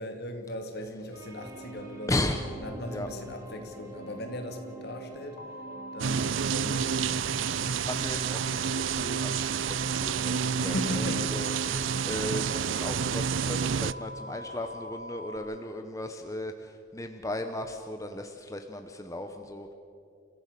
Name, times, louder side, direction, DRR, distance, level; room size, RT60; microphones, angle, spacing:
voice 1, 0.0-2.3 2.6-5.5 5.9-7.2 10.6-11.4 11.9-12.1, left 1 dB, 55° left, 5 dB, 2.3 m, -38 dB
sound 1, 1.1-6.3, right 2 dB, 15° right, 3.8 m, -45 dB
voice 2, 2.1-2.4 2.9-3.1 7.6-19.7, left 1 dB, 15° left, 6 dB, 0.9 m, -36 dB
sound 2, 5.4-15.4, equal, 40° left, 1.6 m, -43 dB
sound 3, 6.0-13.9, right 7 dB, 70° right, 0.4 m, -29 dB
29.0 x 15.0 x 6.8 m, 2.5 s
head